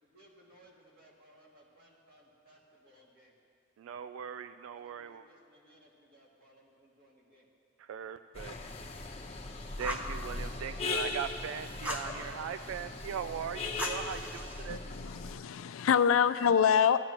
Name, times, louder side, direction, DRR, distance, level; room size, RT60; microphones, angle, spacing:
voice 1, 0.0-3.3 4.7-7.5 8.3-9.4, equal, 45° right, 2.2 m, -62 dB
voice 2, 3.8-5.2 7.8-8.6 9.8-14.8, right 8 dB, 80° right, 0.3 m, -39 dB
sound 1, 8.3-15.3, left 3 dB, 30° left, 1.0 m, -39 dB
Fire, 9.8-10.2 11.8-12.1 13.8-14.7, equal, 10° right, 0.8 m, -38 dB
voice 3, 14.7-17.0, left 7 dB, 85° left, 0.4 m, -26 dB
17.5 x 12.0 x 3.0 m
head